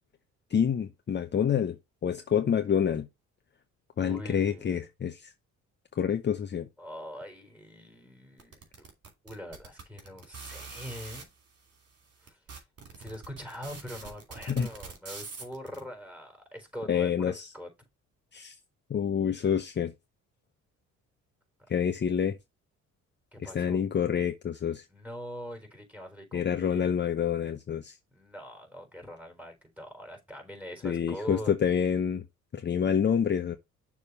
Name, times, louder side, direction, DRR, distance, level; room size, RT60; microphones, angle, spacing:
voice 1, 0.5-1.8 2.0-3.1 4.0-5.3 6.0-6.7 14.5-14.7 16.9-17.5 18.3-18.5 18.9-19.9 21.7-22.4 23.4-24.8 26.3-27.9 30.8-32.2 32.5-33.6, left 8 dB, 35° left, 0.7 m, -27 dB
voice 2, 4.0-4.9 6.8-8.9 9.2-11.3 12.2-12.4 12.8-17.7 23.3-23.8 24.9-27.0 28.1-31.5, equal, 5° right, 3.7 m, -43 dB
sound 1, 8.4-11.2 11.9-12.0 12.3-15.8, right 4 dB, 50° right, 2.8 m, -44 dB
6.6 x 3.6 x 5.3 m
cardioid pair, 90°, 30 cm